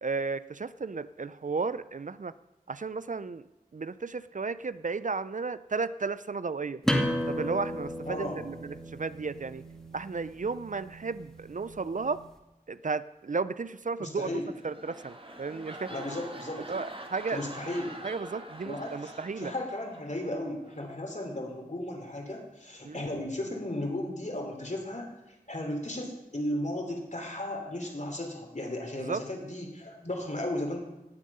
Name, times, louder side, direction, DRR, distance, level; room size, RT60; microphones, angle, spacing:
voice 1, 0.0-2.3 2.7-3.4 3.7-6.8 7.3-9.6 9.9-12.2 12.7-14.3 14.6-15.9 16.7-17.4 18.0-19.5 22.8-23.0 29.0-29.2, right 4 dB, 55° right, 15 dB, 0.5 m, -33 dB
sound 1, 6.8-12.2, equal, 5° left, 2.1 m, -34 dB
voice 2, 8.1-8.4 14.0-14.5 15.9-16.7 17.3-17.9 18.6-30.8, left 1 dB, 50° left, 2 dB, 3.1 m, -35 dB
sound 2, 14.4-20.3 20.6-21.0, right 1 dB, 35° right, 1.5 m, -45 dB
18.0 x 7.4 x 5.5 m, 1.0 s
wide cardioid pair, 40°, 16 cm